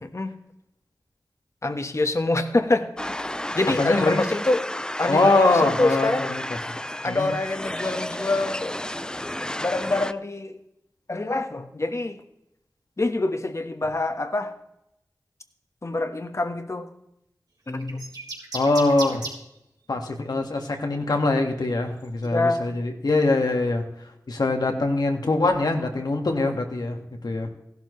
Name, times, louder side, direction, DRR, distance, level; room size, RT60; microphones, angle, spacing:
voice 1, 0.0-0.3 1.6-3.2 3.5-4.6 5.0-6.3 7.0-8.8 9.6-10.6 11.1-12.2 13.0-14.5 15.8-16.9 17.7-18.1 22.2-22.6, left 2 dB, 45° left, 8 dB, 1.3 m, -25 dB
sound 1, 3.0-10.1, left 1 dB, 10° left, 0.5 m, -32 dB
voice 2, 3.7-4.2 5.1-6.4 7.0-7.3 18.5-19.2 19.9-23.9 24.3-27.5, left 2 dB, 80° left, 3 dB, 1.8 m, -23 dB
sound 2, 17.8-19.4 20.5-20.7 21.4-22.6, right 3 dB, 85° right, 3.6 m, -35 dB
16.0 x 11.5 x 3.2 m, 0.84 s
wide cardioid pair, 50°, 7 cm